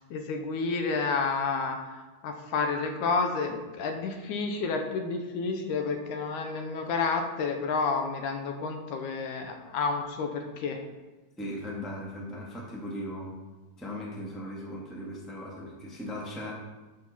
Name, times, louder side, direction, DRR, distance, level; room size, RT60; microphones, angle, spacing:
voice 1, 0.1-10.8, left 4 dB, 80° left, 4 dB, 2.3 m, -30 dB
voice 2, 11.4-13.3 13.8-16.5, equal, ahead, -4 dB, 0.9 m, -38 dB
12.5 x 5.3 x 4.1 m, 1.2 s
omnidirectional pair, 3.6 m